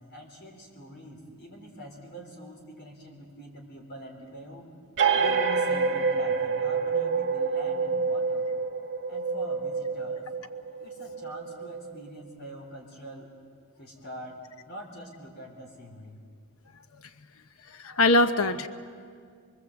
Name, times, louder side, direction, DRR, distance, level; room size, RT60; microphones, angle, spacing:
voice 1, 0.0-4.7 5.1-8.4 9.1-10.3 10.8-13.3 13.8-14.4 14.7-16.2, equal, 50° left, 1 dB, 4.0 m, -44 dB
sound 1, 5.0-12.2, right 5 dB, 55° right, 1.8 m, -27 dB
voice 2, 17.7-18.7, left 2 dB, 70° left, 10 dB, 0.9 m, -22 dB
24.5 x 24.0 x 8.0 m, 2.1 s
head